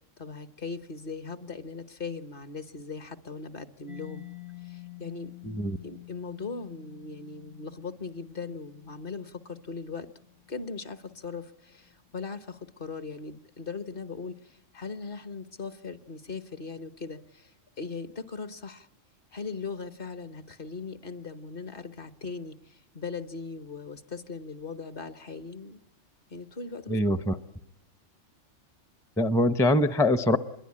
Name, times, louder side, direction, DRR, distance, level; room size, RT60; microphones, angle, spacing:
voice 1, 0.2-4.3 4.6-5.3 5.7-10.1 10.5-18.9 19.3-25.8 26.3-27.0, left 4 dB, 45° left, 11 dB, 1.2 m, -39 dB
Mallet percussion, 3.9-11.4, left 18 dB, 65° left, 1.5 m, -48 dB
voice 2, 5.4-5.8 26.9-27.4 29.2-30.4, left 1 dB, 5° left, 11 dB, 0.6 m, -23 dB
26.5 x 22.0 x 8.6 m, 0.92 s
omnidirectional pair, 1.3 m